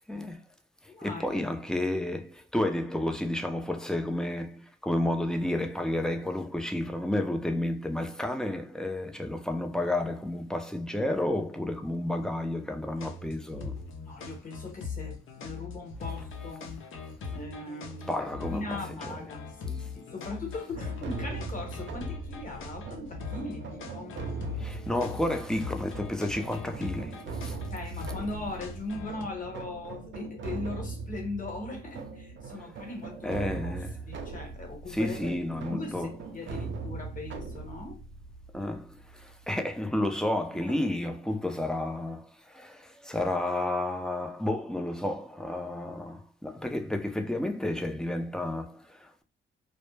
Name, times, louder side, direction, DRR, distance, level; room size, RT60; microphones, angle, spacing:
voice 1, 0.1-0.4 0.8-13.8 18.1-19.2 24.6-27.6 33.2-34.0 34.9-36.1 38.5-49.2, left 1 dB, 5° left, 0.4 m, -31 dB
voice 2, 0.9-1.4 13.9-16.8 17.3-18.1 18.5-24.2 27.5-35.4 35.7-38.0 40.5-40.8, left 2 dB, 40° left, 1.0 m, -40 dB
sound 1, 13.0-29.3, left 4 dB, 75° left, 0.6 m, -40 dB
sound 2, 20.7-39.5, right 4 dB, 65° right, 0.6 m, -40 dB
2.1 x 2.0 x 3.1 m
cardioid pair, 85°, 21 cm